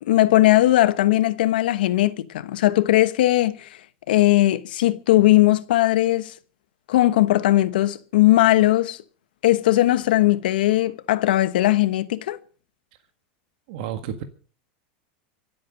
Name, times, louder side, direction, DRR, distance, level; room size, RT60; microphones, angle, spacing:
voice 1, 0.0-3.8 4.1-6.3 6.9-9.0 9.4-12.4, left 15 dB, 85° left, 1.1 m, -19 dB
voice 2, 13.7-14.2, right 9 dB, 65° right, 1.7 m, -31 dB
25.0 x 8.5 x 5.2 m
supercardioid pair, 140°, 5 cm